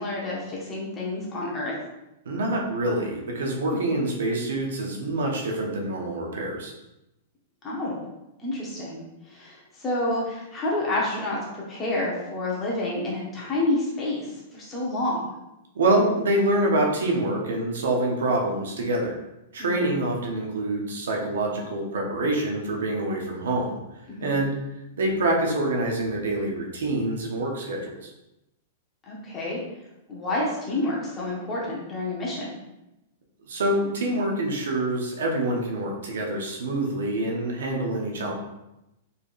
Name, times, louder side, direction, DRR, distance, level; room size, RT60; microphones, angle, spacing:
voice 1, 0.0-1.7 3.6-3.8 7.6-8.0 8.4-15.3 19.6-19.8 24.1-24.4 29.1-29.6 30.1-32.5, left 2 dB, 15° left, -5 dB, 1.1 m, -29 dB
voice 2, 2.2-6.7 15.7-19.2 19.5-23.7 24.2-24.5 25.0-28.1 33.5-38.3, right 1 dB, 90° right, 0 dB, 0.9 m, -26 dB
4.3 x 3.4 x 2.5 m, 0.92 s
supercardioid pair, 165°, 0 cm